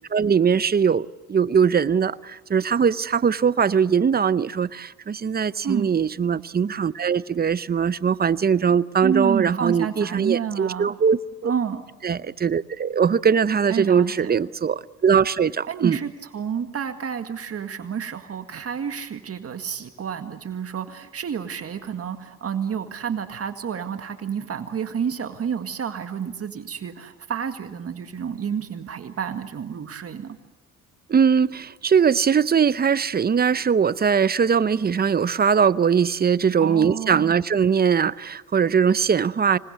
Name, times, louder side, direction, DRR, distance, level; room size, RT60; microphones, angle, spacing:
voice 1, 0.1-11.5 12.0-16.0 31.1-39.6, right 6 dB, 30° right, 0.7 m, -21 dB
voice 2, 9.0-10.9 11.4-11.8 13.7-14.3 15.7-30.4 36.6-37.4, right 7 dB, 50° right, 1.9 m, -29 dB
26.0 x 20.0 x 8.1 m
cardioid pair, 90°, 30 cm